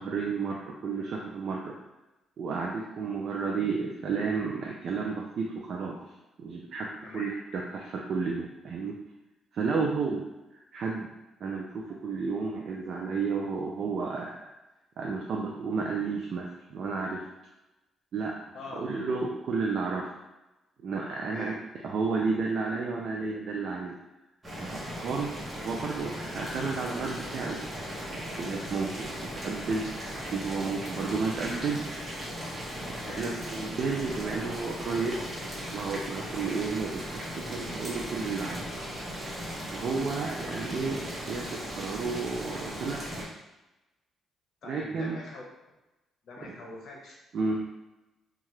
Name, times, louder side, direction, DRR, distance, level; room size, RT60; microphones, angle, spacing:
voice 1, 0.0-1.7 2.4-6.0 6.4-6.9 7.1-9.0 9.5-10.2 10.5-11.1 11.4-14.4 15.0-17.2 18.1-18.3 18.7-20.1 20.8-24.0 24.6-27.6 28.1-29.1 29.4-29.9 30.3-32.0 32.9-35.2 35.7-38.7 39.7-43.0 44.6-45.2 47.3-47.6, right 4 dB, 60° right, -1 dB, 0.4 m, -32 dB
voice 2, 7.0-7.6 18.5-18.9 21.2-21.6 33.0-33.4 40.5-40.6 44.6-45.4 46.2-47.1 47.5-47.6, left 2 dB, 65° left, -1 dB, 0.7 m, -43 dB
Boiling, 24.4-43.2, equal, 25° right, 1.0 m, -37 dB
2.8 x 2.3 x 3.1 m, 1.0 s
cardioid pair, 90°, 0 cm